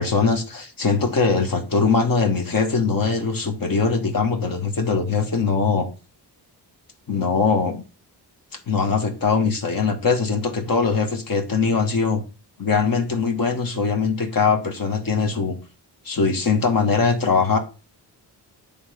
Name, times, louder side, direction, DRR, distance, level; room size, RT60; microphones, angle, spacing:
voice 1, 0.0-5.9 7.1-7.7 8.7-12.2 12.6-15.6 16.0-17.6, left 5 dB, 55° left, 1.4 m, -21 dB
9.6 x 3.6 x 5.0 m
wide cardioid pair, 140°, 41 cm